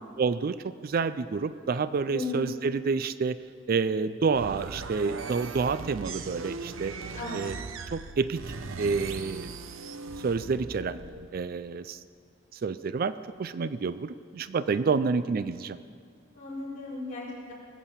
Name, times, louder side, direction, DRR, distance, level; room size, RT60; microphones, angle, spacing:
voice 1, 0.2-0.6 0.8-3.4 3.7-6.9 7.3-7.6 7.9-8.4 8.8-9.5 10.2-11.0 11.3-12.0 12.6-13.1 13.4-15.8, right 5 dB, 45° right, 14 dB, 0.4 m, -28 dB
voice 2, 2.1-2.5 7.1-7.4 16.3-17.5, left 3 dB, 40° left, -6 dB, 4.8 m, -36 dB
sound 1, 4.3-11.3, right 4 dB, 85° right, 0.8 m, -39 dB
19.5 x 8.5 x 7.3 m, 2.3 s
head